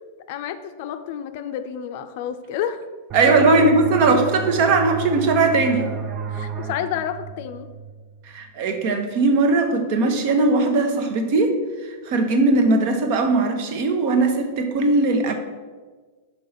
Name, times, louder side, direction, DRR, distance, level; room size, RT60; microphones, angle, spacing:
voice 1, 0.3-2.8 3.3-3.7 6.3-7.7, left 10 dB, 55° left, 9 dB, 0.5 m, -29 dB
sound 1, 3.1-8.5, right 6 dB, 30° right, 0.5 m, -32 dB
voice 2, 3.1-5.9 8.3-11.6 12.1-15.3, right 3 dB, 50° right, 6 dB, 1.0 m, -19 dB
5.5 x 4.4 x 5.7 m, 1.4 s
hypercardioid pair, 135°, 0 cm